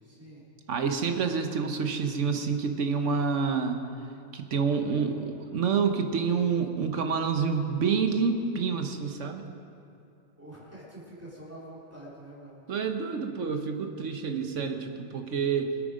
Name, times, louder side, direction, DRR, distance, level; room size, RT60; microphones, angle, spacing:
voice 1, 0.0-0.5 4.7-5.2 10.4-12.6, right 1 dB, 10° right, -7 dB, 3.6 m, -46 dB
voice 2, 0.7-3.8 4.3-9.5 12.7-15.7, right 5 dB, 65° right, 6 dB, 1.3 m, -28 dB
21.0 x 9.1 x 5.1 m, 2.7 s
omnidirectional pair, 1.4 m